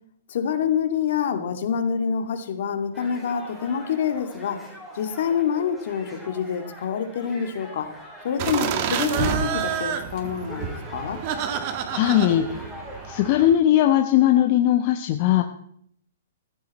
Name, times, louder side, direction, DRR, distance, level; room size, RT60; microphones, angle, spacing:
voice 1, 0.3-4.7 4.9-7.9 8.2-11.2, left 7 dB, 60° left, 7 dB, 2.2 m, -26 dB
sound 1, 2.9-13.4, equal, 5° right, 3.9 m, -42 dB
sound 2, 8.4-13.6, right 8 dB, 40° right, 1.7 m, -29 dB
voice 2, 11.9-12.6 13.0-15.4, left 12 dB, 40° left, 6 dB, 1.0 m, -19 dB
15.0 x 14.0 x 4.2 m, 0.65 s
hypercardioid pair, 150°, 0 cm